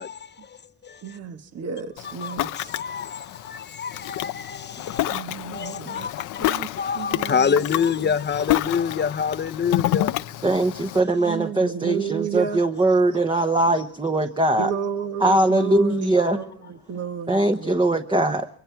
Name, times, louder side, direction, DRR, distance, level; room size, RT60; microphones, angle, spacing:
voice 1, 0.0-1.2 2.0-5.3 5.5-10.1, left 6 dB, 35° left, 0.9 m, -27 dB
voice 2, 1.0-2.7 5.1-6.1 6.4-7.6 11.3-12.6 14.6-17.8, right 7 dB, 55° right, 1.5 m, -32 dB
Ocean, 2.0-11.0, left 14 dB, 90° left, 0.7 m, -29 dB
voice 3, 10.4-14.7 15.2-16.4 17.3-18.5, right 2 dB, 15° right, 1.2 m, -21 dB
24.5 x 23.5 x 4.6 m
cardioid pair, 90°, 30 cm